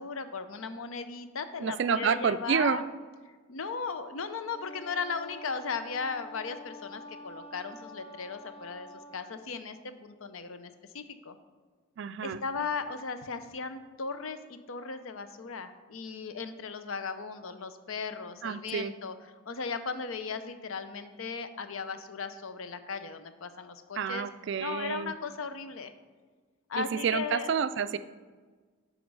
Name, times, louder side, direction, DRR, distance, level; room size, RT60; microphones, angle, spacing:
voice 1, 0.0-2.8 3.5-11.4 12.2-19.1 19.5-24.3 24.6-25.9 26.7-27.5, left 5 dB, 75° left, 10 dB, 0.6 m, -37 dB
voice 2, 1.6-2.8 12.0-12.4 18.4-18.9 24.0-25.1 26.8-28.0, right 7 dB, 55° right, 14 dB, 0.3 m, -29 dB
Wind instrument woodwind instrument, 4.5-9.4, left 1 dB, 30° left, 0.6 m, -47 dB
7.8 x 5.1 x 5.4 m, 1.4 s
head